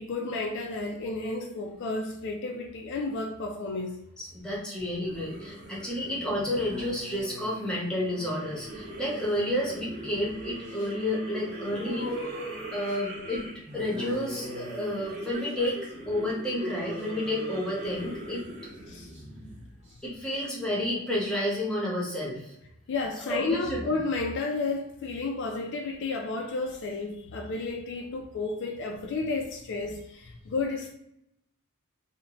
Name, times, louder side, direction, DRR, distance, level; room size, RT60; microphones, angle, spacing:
voice 1, 0.0-4.0 18.9-19.1 22.9-30.9, left 3 dB, 50° left, 0.3 m, -32 dB
voice 2, 4.2-12.1 12.7-13.5 13.7-15.8 16.1-18.4 20.0-22.5 23.2-23.9, left 1 dB, 5° left, 0.8 m, -30 dB
sound 1, 5.0-19.9, right 1 dB, 30° right, 0.9 m, -39 dB
2.6 x 2.1 x 2.8 m
head